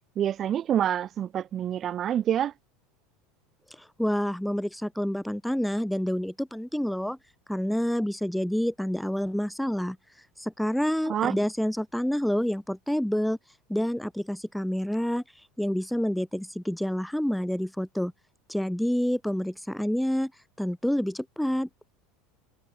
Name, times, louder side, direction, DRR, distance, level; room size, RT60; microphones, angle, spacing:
voice 1, 0.2-2.5 11.1-11.4, right 10 dB, 40° right, 7.0 m, -27 dB
voice 2, 3.7-7.2 7.5-10.0 10.4-13.4 13.7-15.2 15.6-18.1 18.5-20.3 20.6-21.7, equal, ahead, 5.9 m, -28 dB
supercardioid pair, 115°, 0 cm